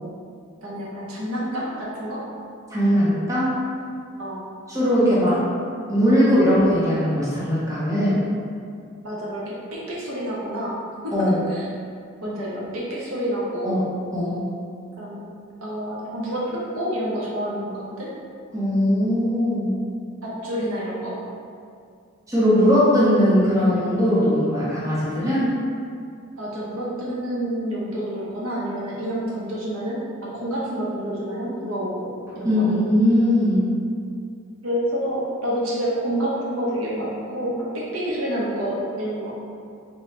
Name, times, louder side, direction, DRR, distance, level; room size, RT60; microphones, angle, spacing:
voice 1, 0.6-2.2 4.2-4.4 5.0-5.5 6.1-6.4 9.0-10.8 11.0-11.1 11.5-11.7 12.2-13.8 15.0-15.3 15.6-18.1 20.2-21.2 26.4-30.0 30.3-32.1 32.4-32.5 34.6-39.3, equal, 75° right, -6 dB, 0.8 m, -28 dB
voice 2, 2.7-3.6 4.7-5.4 5.9-8.2 11.1-11.4 13.6-13.8 14.1-14.5 18.5-19.7 22.3-25.5 32.4-33.7, equal, 15° right, -10 dB, 0.8 m, -19 dB
4.1 x 2.2 x 3.2 m, 2.3 s
head